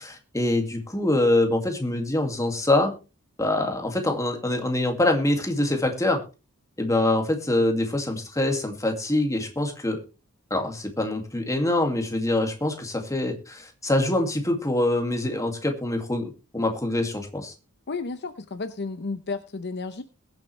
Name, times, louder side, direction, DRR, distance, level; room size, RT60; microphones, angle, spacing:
voice 1, 0.0-2.9 3.4-6.2 6.8-10.0 10.5-17.5, left 1 dB, 15° left, 3 dB, 2.2 m, -24 dB
voice 2, 17.9-20.0, left 3 dB, 50° left, 10 dB, 0.8 m, -32 dB
21.5 x 7.5 x 3.3 m, 0.32 s
head